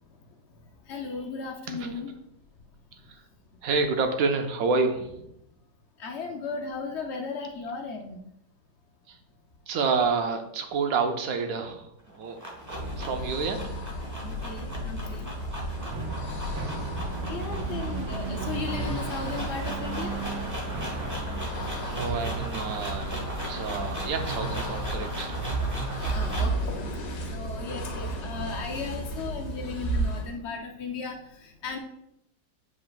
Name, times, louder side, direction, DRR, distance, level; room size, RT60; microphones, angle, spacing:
voice 1, 0.8-2.1 6.0-8.2 14.2-15.3 16.9-20.2 21.3-21.9 23.6-24.0 26.1-31.8, left 4 dB, 85° left, 1 dB, 0.6 m, -36 dB
voice 2, 2.9-3.2 3.6-5.3 9.1-9.2 9.7-12.4 12.7-13.8 21.8-23.2 23.5-25.4, right 4 dB, 65° right, 6 dB, 0.9 m, -29 dB
sound 1, 12.0-26.6, equal, 15° right, 0.8 m, -39 dB
sound 2, 12.6-30.4, right 1 dB, 60° left, 1.6 m, -34 dB
sound 3, 15.8-26.7, right 4 dB, 80° right, 1.5 m, -37 dB
8.4 x 5.0 x 2.4 m, 0.79 s
omnidirectional pair, 2.2 m